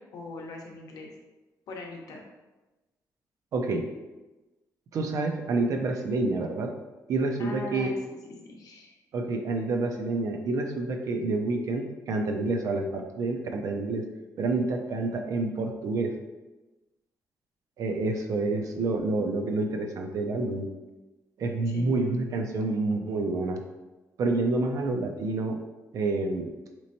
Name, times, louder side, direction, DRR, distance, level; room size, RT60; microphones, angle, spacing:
voice 1, 0.1-1.1 1.7-2.2 7.4-9.0 21.6-22.2, left 2 dB, 70° left, 0 dB, 0.7 m, -41 dB
voice 2, 3.5-3.9 4.9-6.7 7.1-7.9 9.1-14.1 14.4-16.2 17.8-20.7 21.4-23.6 24.2-25.6 25.9-26.5, right 3 dB, 60° right, 4 dB, 0.4 m, -28 dB
4.2 x 3.0 x 2.6 m, 1.1 s
wide cardioid pair, 170°, 6 cm